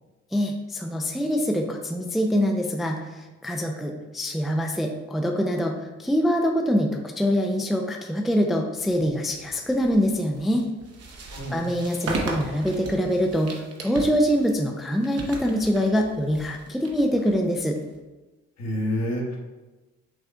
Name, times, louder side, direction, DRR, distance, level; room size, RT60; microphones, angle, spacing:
voice 1, 0.3-6.9 7.2-10.6 11.5-17.8, equal, ahead, 2 dB, 0.4 m, -24 dB
sound 1, 9.3-18.0, right 3 dB, 55° right, 0.9 m, -37 dB
voice 2, 11.3-11.7 18.6-19.4, equal, 60° left, -2 dB, 1.4 m, -28 dB
6.2 x 2.3 x 3.7 m, 1.1 s
cardioid pair, 90°, 30 cm